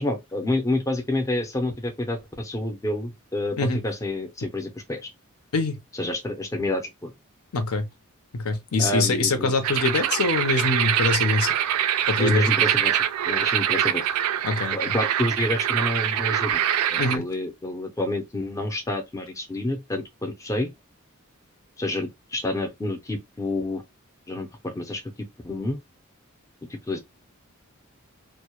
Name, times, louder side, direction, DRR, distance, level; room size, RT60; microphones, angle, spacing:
voice 1, 0.0-5.1 6.0-7.1 8.8-9.5 12.2-13.0 13.2-14.1 14.5-16.6 16.9-20.7 21.8-23.8 24.3-25.0 25.4-25.8 26.9-27.0, left 1 dB, 15° left, 0.4 m, -28 dB
voice 2, 7.5-7.9 8.3-11.5 12.1-12.5 14.4-14.9 17.0-17.3, left 3 dB, 80° left, 0.6 m, -24 dB
sound 1, 9.6-17.2, right 10 dB, 90° right, 0.3 m, -24 dB
2.1 x 2.0 x 2.8 m
head